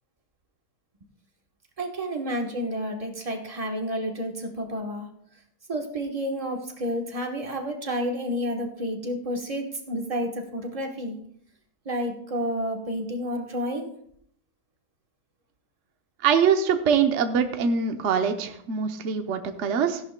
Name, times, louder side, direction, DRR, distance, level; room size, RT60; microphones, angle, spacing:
voice 1, 1.8-5.1 5.7-11.2 11.8-13.9, equal, 25° right, 2 dB, 1.2 m, -30 dB
voice 2, 16.2-20.0, right 6 dB, 55° right, 6 dB, 1.1 m, -23 dB
16.5 x 11.0 x 2.2 m, 0.68 s
omnidirectional pair, 1.7 m